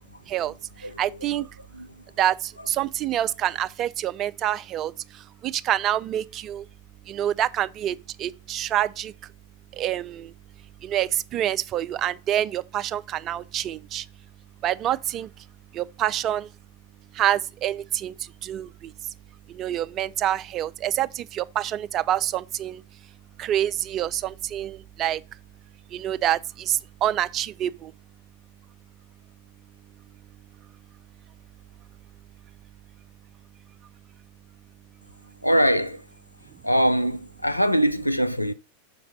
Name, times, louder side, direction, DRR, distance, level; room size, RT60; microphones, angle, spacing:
voice 1, 1.0-1.4 2.2-4.9 5.4-6.6 7.1-9.1 9.8-10.3 10.8-14.0 14.6-15.3 15.8-16.5 17.2-18.1 18.4-18.7 19.5-22.8 23.4-25.2 25.9-27.9, right 11 dB, 35° right, 0.4 m, -26 dB
voice 2, 35.4-36.0 36.6-38.5, equal, 90° left, 0.5 m, -22 dB
6.0 x 3.9 x 5.8 m
figure-of-eight pair, 90°, 0 cm